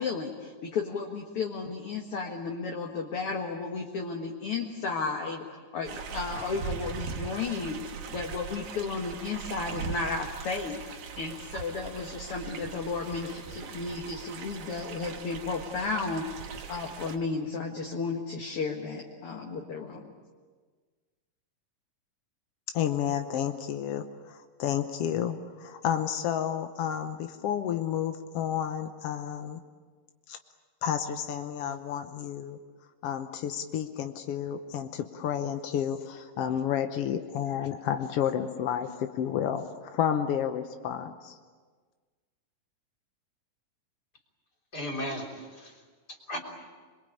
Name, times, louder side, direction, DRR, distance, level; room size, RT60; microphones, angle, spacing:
voice 1, 0.0-7.8 8.1-10.8 11.2-16.3 16.7-20.0, left 4 dB, 50° left, 1 dB, 2.2 m, -33 dB
sound 1, 5.8-17.2, right 6 dB, 75° right, 3.2 m, -40 dB
voice 2, 22.7-24.0 24.6-29.6 30.3-30.4 30.8-32.6 33.0-39.6 39.9-41.3, left 9 dB, 75° left, 7 dB, 1.4 m, -31 dB
voice 3, 44.7-46.4, left 1 dB, 30° left, 2 dB, 3.8 m, -37 dB
27.5 x 22.0 x 8.5 m, 1.5 s
omnidirectional pair, 3.9 m